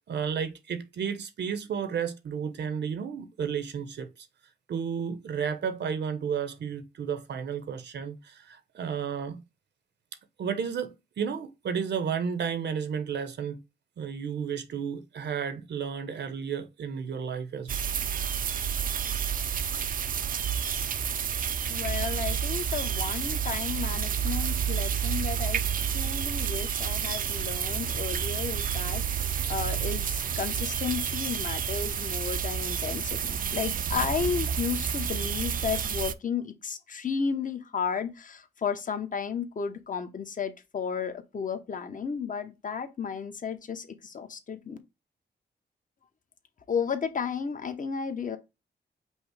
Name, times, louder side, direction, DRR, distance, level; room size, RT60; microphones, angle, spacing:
voice 1, 0.1-4.1 4.7-9.4 10.4-13.6 14.0-17.7 18.4-18.5, right 7 dB, 70° right, 0.8 m, -32 dB
sound 1, 17.7-36.1, right 8 dB, 50° right, 0.4 m, -30 dB
voice 2, 21.7-44.8 46.7-48.4, left 6 dB, 45° left, 0.9 m, -33 dB
5.4 x 2.1 x 4.7 m
cardioid pair, 90°, 18 cm